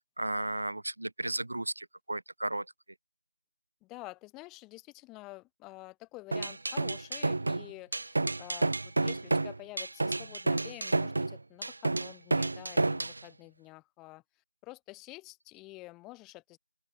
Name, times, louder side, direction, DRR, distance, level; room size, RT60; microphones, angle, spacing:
voice 1, 0.2-2.6, right 2 dB, 65° right, 1.0 m, -34 dB
voice 2, 3.8-14.2 14.6-16.6, left 21 dB, 5° left, 4.2 m, -49 dB
sound 1, 6.3-13.2, right 2 dB, 45° right, 2.8 m, -30 dB
open air
figure-of-eight pair, 175°, 0 cm